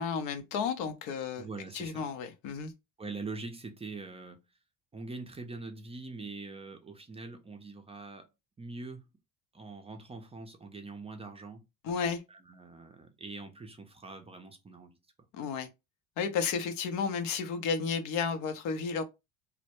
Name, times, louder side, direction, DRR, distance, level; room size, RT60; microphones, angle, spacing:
voice 1, 0.0-1.5 1.7-2.7 11.8-12.2 15.3-15.7 16.2-19.0, left 6 dB, 70° left, 0.6 m, -32 dB
voice 2, 1.4-2.1 3.0-4.4 4.9-8.3 8.6-9.1 9.5-11.6 12.3-15.0, right 3 dB, 15° right, 0.4 m, -43 dB
2.1 x 2.0 x 2.8 m
supercardioid pair, 90°, 35 cm